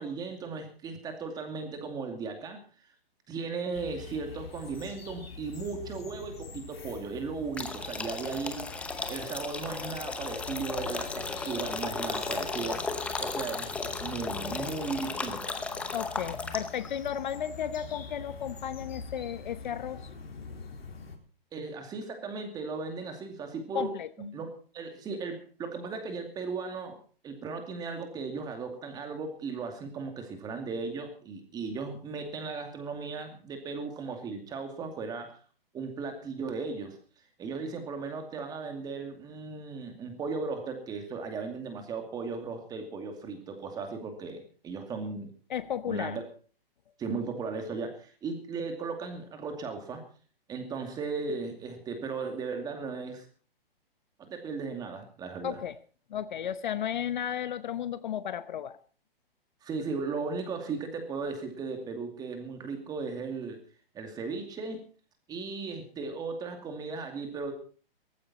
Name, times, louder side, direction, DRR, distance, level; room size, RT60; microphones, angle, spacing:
voice 1, 0.0-2.6 3.3-8.7 9.1-15.6 21.5-23.9 24.2-24.5 24.7-27.0 27.2-35.3 35.7-37.0 37.4-45.3 45.9-46.2 47.0-50.0 50.5-53.3 54.2-55.6 59.6-63.6 63.9-64.8 65.3-67.5, right 4 dB, 15° right, 5 dB, 2.4 m, -36 dB
sound 1, 3.7-21.2, left 4 dB, 80° left, 4.3 m, -45 dB
sound 2, 7.5-16.9, left 4 dB, 5° left, 0.8 m, -35 dB
voice 2, 15.9-20.1 23.7-24.1 45.5-46.2 55.4-55.7 56.1-58.8, left 9 dB, 50° left, 14 dB, 1.0 m, -34 dB
17.5 x 15.0 x 4.2 m, 0.42 s
hypercardioid pair, 155°, 30 cm